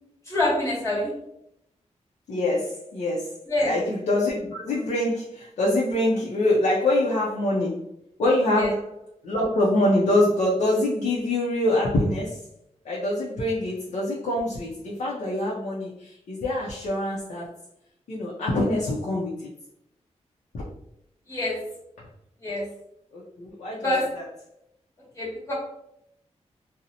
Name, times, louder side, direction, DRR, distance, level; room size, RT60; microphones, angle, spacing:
voice 1, 0.2-1.1 3.5-3.7 8.6-8.7 21.3-21.6 22.4-22.6 23.8-24.1 25.1-25.5, left 1 dB, 25° left, -7 dB, 1.2 m, -25 dB
voice 2, 2.3-3.4 3.6-7.8 8.2-8.8 9.2-12.4 12.8-17.5 18.1-19.5 20.5-20.7 23.1-24.2, left 1 dB, 80° left, -5 dB, 0.5 m, -25 dB
2.6 x 2.0 x 2.7 m, 0.79 s
wide cardioid pair, 130°, 12 cm